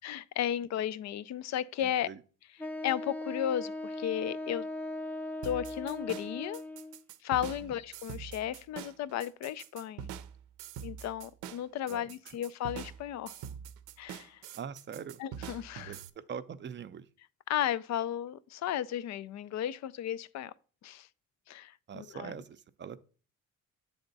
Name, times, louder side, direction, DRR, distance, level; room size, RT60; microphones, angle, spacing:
voice 1, 0.0-2.1 2.8-4.7 5.4-6.6 7.2-10.1 10.8-13.4 14.0-14.4 15.2-16.0 17.5-20.5 20.8-21.1 21.5-22.3, left 11 dB, 65° left, 0.5 m, -34 dB
voice 2, 1.8-2.2 7.4-7.7 11.9-12.1 14.6-15.2 15.9-17.1 21.9-23.0, right 7 dB, 40° right, 0.5 m, -43 dB
Wind instrument woodwind instrument, 2.6-7.0, left 1 dB, 5° left, 0.6 m, -39 dB
sound 1, 5.4-16.1, right 9 dB, 85° right, 0.6 m, -44 dB
8.0 x 3.6 x 3.9 m
cardioid pair, 90°, 30 cm